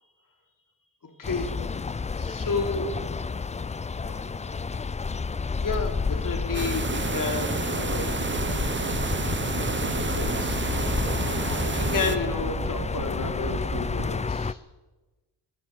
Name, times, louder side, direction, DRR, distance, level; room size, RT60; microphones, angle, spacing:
voice 1, 1.2-1.5 2.1-2.9 4.1-4.7 5.6-8.1 9.6-10.6 11.7-14.6, left 4 dB, 50° left, 3 dB, 3.5 m, -32 dB
sound 1, 1.2-14.5, left 4 dB, 15° left, 0.5 m, -30 dB
sound 2, 6.5-12.2, right 5 dB, 25° right, 1.0 m, -30 dB
sound 3, 8.1-14.1, right 4 dB, 85° right, 4.9 m, -34 dB
14.0 x 12.0 x 7.7 m, 1.2 s
supercardioid pair, 55°, 42 cm